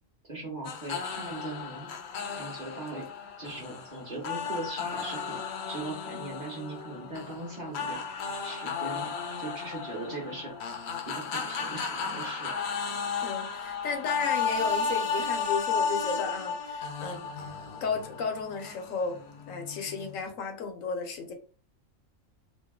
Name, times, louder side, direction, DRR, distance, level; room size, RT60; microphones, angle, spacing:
voice 1, 0.3-1.9 2.3-3.0 3.4-5.4 5.7-9.1 9.4-10.5 11.1-12.5, right 2 dB, 35° right, -2 dB, 1.1 m, -39 dB
sound 1, 0.6-20.2, left 5 dB, 60° left, 0.8 m, -34 dB
voice 2, 13.2-17.3 17.8-19.2 19.5-21.3, left 5 dB, 80° left, 5 dB, 1.1 m, -34 dB
3.0 x 2.6 x 3.6 m, 0.38 s
omnidirectional pair, 1.4 m